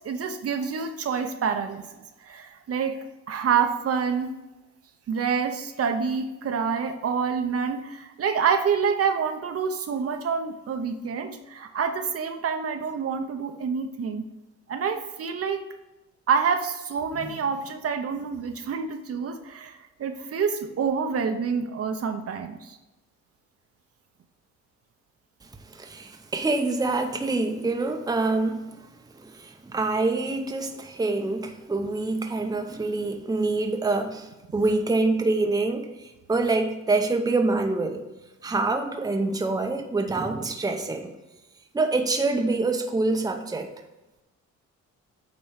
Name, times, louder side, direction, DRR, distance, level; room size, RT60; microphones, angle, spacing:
voice 1, 0.0-1.8 2.2-4.3 5.1-14.2 14.7-15.6 16.3-22.8, right 6 dB, 50° right, 6 dB, 0.8 m, -27 dB
voice 2, 25.6-28.9 29.1-38.0 38.4-41.2 41.7-43.7, right 3 dB, 15° right, 5 dB, 0.7 m, -26 dB
8.8 x 3.1 x 5.7 m, 1.0 s
cardioid pair, 90°, 30 cm